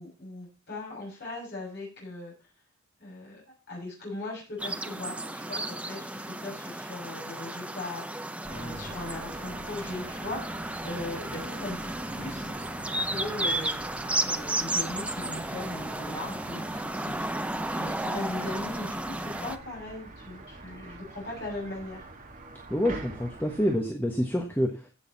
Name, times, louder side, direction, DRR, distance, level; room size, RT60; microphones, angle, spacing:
voice 1, 0.0-2.3 3.0-3.4 3.7-12.5 13.0-13.8 14.2-17.5 17.7-22.0, left 2 dB, 55° left, -3 dB, 6.4 m, -39 dB
sound 1, 4.6-19.6, right 1 dB, 5° right, 0.6 m, -33 dB
sound 2, 8.4-23.8, right 2 dB, 40° right, 1.9 m, -45 dB
voice 2, 8.5-8.8 22.7-24.7, equal, 10° left, 2 dB, 1.4 m, -27 dB
15.5 x 6.8 x 4.1 m, 0.33 s
head